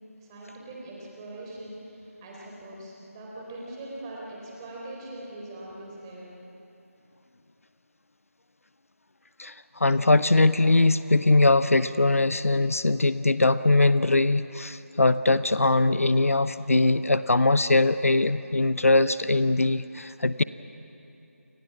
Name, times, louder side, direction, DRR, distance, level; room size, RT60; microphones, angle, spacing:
voice 1, 0.2-6.3, right 1 dB, 15° right, -3 dB, 4.2 m, -41 dB
voice 2, 9.4-20.4, left 2 dB, 65° left, 14 dB, 0.7 m, -21 dB
29.5 x 26.0 x 6.1 m, 2.9 s
figure-of-eight pair, 160°, 8 cm